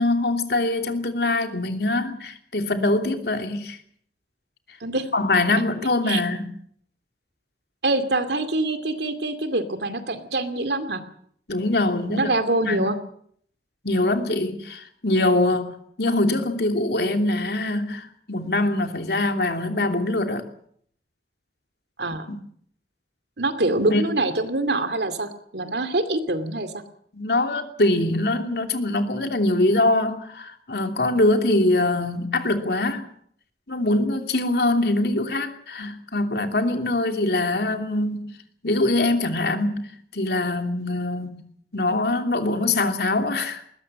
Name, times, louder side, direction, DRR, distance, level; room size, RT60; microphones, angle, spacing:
voice 1, 0.0-3.8 5.1-6.5 11.5-12.3 12.6-12.9 13.8-20.4 22.3-22.4 23.9-24.0 27.1-33.1 33.7-38.3 38.6-39.9 40.1-41.4 41.7-43.6, left 2 dB, 65° left, 5 dB, 2.9 m, -23 dB
voice 2, 7.8-11.0 12.1-13.0 22.0-22.3 23.4-26.7, right 2 dB, 75° right, 10 dB, 2.5 m, -25 dB
21.0 x 19.0 x 7.6 m, 0.64 s
head